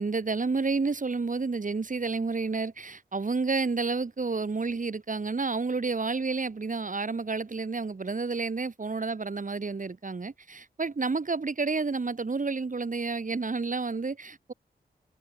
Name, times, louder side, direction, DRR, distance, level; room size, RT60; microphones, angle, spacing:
voice 1, 0.0-14.5, right 4 dB, 50° right, 5.2 m, -30 dB
cardioid pair, 65°, 17 cm